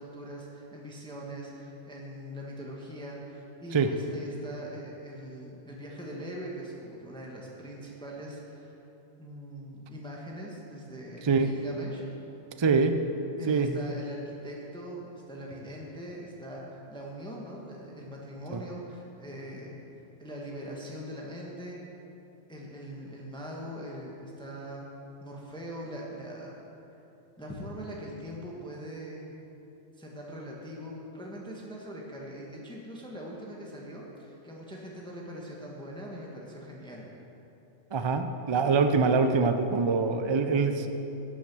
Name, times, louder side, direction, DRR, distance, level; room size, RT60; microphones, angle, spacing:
voice 1, 0.0-8.8 9.2-12.0 13.4-19.8 20.2-21.8 22.5-24.9 25.2-26.5 27.4-29.3 30.0-37.0, equal, 5° left, -3 dB, 1.3 m, -41 dB
voice 2, 12.6-12.9 13.5-13.8 18.5-18.6 37.9-40.9, right 4 dB, 45° right, 7 dB, 0.3 m, -24 dB
11.5 x 8.6 x 6.1 m, 2.9 s
omnidirectional pair, 1.4 m